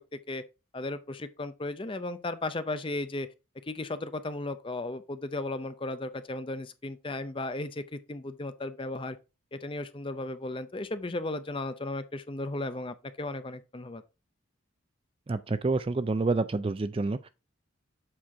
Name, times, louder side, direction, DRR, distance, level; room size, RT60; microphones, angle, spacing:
voice 1, 0.7-3.3 3.7-9.2 9.5-14.0, left 2 dB, 25° left, 0.5 m, -35 dB
voice 2, 15.3-17.3, right 3 dB, 25° right, 0.3 m, -28 dB
7.5 x 4.4 x 4.6 m
head